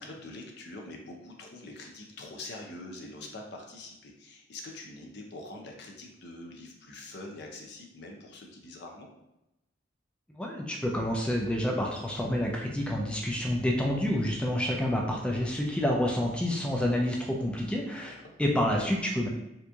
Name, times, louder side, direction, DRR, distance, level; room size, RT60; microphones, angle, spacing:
voice 1, 0.0-9.1 18.0-18.3, left 2 dB, 60° left, 1 dB, 0.6 m, -44 dB
voice 2, 10.4-19.3, left 1 dB, 5° left, -1 dB, 0.4 m, -28 dB
2.9 x 2.5 x 3.4 m, 0.89 s
head